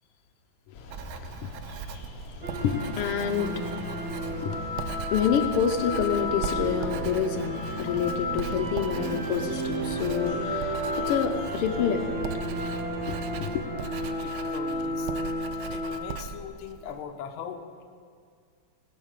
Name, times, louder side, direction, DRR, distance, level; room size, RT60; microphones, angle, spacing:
voice 1, 0.7-12.4 13.1-13.7, left 7 dB, 85° left, 6 dB, 1.7 m, -29 dB
sound 1, 0.7-13.6, left 3 dB, 45° left, 1.7 m, -44 dB
Writing, 0.9-17.0, right 8 dB, 75° right, 1.5 m, -40 dB
sound 2, 2.4-16.3, equal, 35° right, 1.4 m, -32 dB
voice 2, 14.2-15.1 15.7-17.8, left 7 dB, 70° left, 5 dB, 1.7 m, -40 dB
17.5 x 7.6 x 6.5 m, 2.1 s
omnidirectional pair, 2.4 m